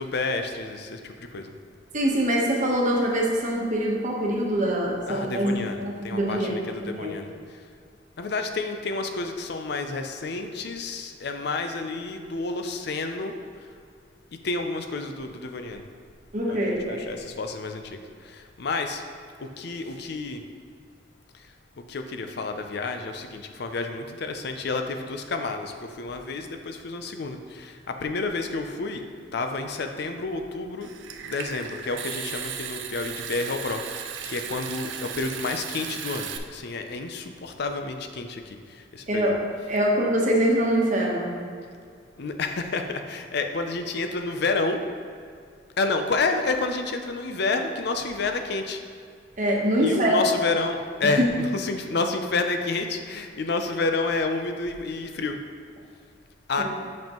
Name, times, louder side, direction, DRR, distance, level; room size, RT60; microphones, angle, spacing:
voice 1, 0.0-1.5 5.1-7.3 8.2-13.3 14.4-15.8 16.5-19.0 19.4-20.4 21.3-21.5 21.9-29.0 29.3-30.9 31.2-39.4 42.2-44.8 45.8-48.8 49.8-55.4 56.5-56.6, left 3 dB, 60° left, 6 dB, 0.5 m, -30 dB
voice 2, 1.9-6.5 6.8-7.1 16.3-17.0 39.1-39.4 39.7-41.3 49.4-50.2 51.0-51.3 56.6-56.7, right 1 dB, 45° right, -2 dB, 1.1 m, -24 dB
Water tap faucet / Sink (filling or washing) / Trickle dribble, 30.8-36.4, right 8 dB, 80° right, 0.5 m, -36 dB
7.6 x 5.3 x 3.0 m, 2.2 s
head